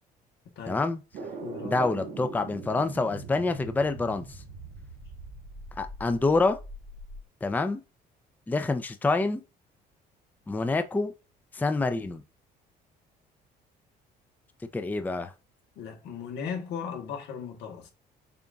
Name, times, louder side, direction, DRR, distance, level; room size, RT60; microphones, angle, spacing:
voice 1, 0.7-1.0 1.6-4.4 5.8-6.6 7.4-7.8 8.5-9.4 10.5-11.1 11.5-12.2 14.7-15.3, left 3 dB, 10° left, 0.4 m, -27 dB
sound 1, 1.1-7.2, right 3 dB, 90° right, 1.7 m, -42 dB
voice 2, 1.2-1.9 15.8-17.9, left 6 dB, 85° left, 1.3 m, -37 dB
6.8 x 2.6 x 2.3 m
cardioid pair, 110°, 17 cm